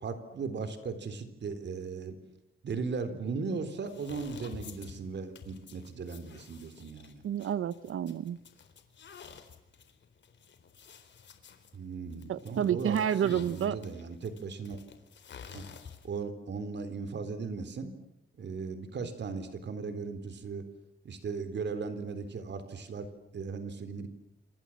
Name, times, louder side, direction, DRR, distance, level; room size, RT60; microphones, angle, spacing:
voice 1, 0.0-2.2 2.6-7.2 11.7-13.0 13.2-14.8 15.5-15.6 16.0-17.9 18.4-20.7 21.0-23.1 23.3-24.1, right 4 dB, 55° right, 10 dB, 3.9 m, -37 dB
sound 1, 3.8-16.2, left 7 dB, 60° left, 3.9 m, -51 dB
voice 2, 7.2-8.4 12.3-13.8, right 9 dB, 90° right, 16 dB, 1.0 m, -29 dB
28.5 x 27.0 x 7.5 m, 0.85 s
wide cardioid pair, 165°, 21 cm